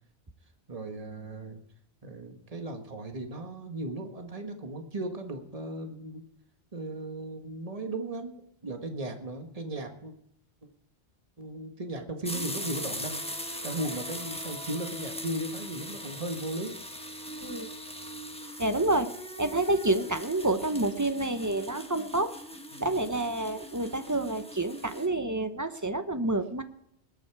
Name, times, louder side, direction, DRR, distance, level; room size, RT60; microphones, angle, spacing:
voice 1, 0.7-1.6 2.0-6.2 6.7-8.4 8.6-10.1 11.4-16.8 22.7-22.9, right 2 dB, 35° right, 5 dB, 1.7 m, -36 dB
sound 1, 12.2-25.1, equal, 5° left, 1.3 m, -40 dB
voice 2, 18.6-19.1 19.4-22.3 22.8-26.6, right 2 dB, 15° right, 9 dB, 0.9 m, -28 dB
20.5 x 9.1 x 4.8 m, 0.75 s
omnidirectional pair, 1.1 m